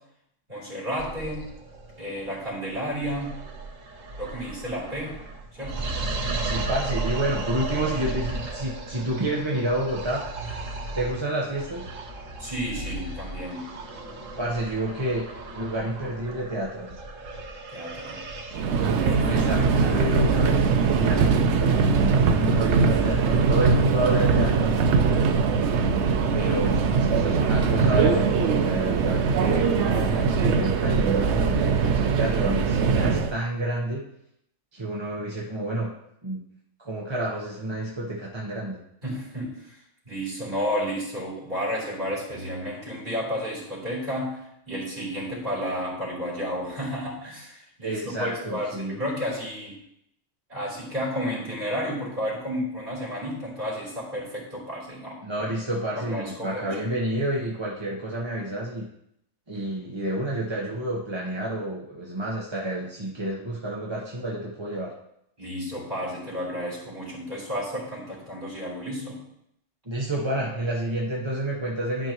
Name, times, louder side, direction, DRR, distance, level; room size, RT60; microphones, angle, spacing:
voice 1, 0.5-1.5 2.0-3.4 4.2-5.2 5.6-5.9 12.4-13.7 17.7-18.2 19.0-19.5 26.3-26.6 39.0-39.8 40.1-44.4 44.7-49.8 50.5-55.5 55.9-56.9 65.4-69.2, equal, 40° right, -6 dB, 3.9 m, -32 dB
sound 1, 1.0-20.7, right 3 dB, 85° right, 1.4 m, -35 dB
voice 2, 6.4-10.3 10.9-11.9 14.4-15.2 15.5-16.9 19.2-24.8 26.3-34.1 34.7-35.9 36.2-36.4 36.8-38.8 47.8-49.0 55.2-58.9 59.5-64.9 69.8-72.1, right 1 dB, 25° right, -4 dB, 1.1 m, -29 dB
Subway metro underground, 18.5-33.4, right 5 dB, 70° right, 0.9 m, -21 dB
12.0 x 5.4 x 3.0 m, 0.76 s
omnidirectional pair, 1.3 m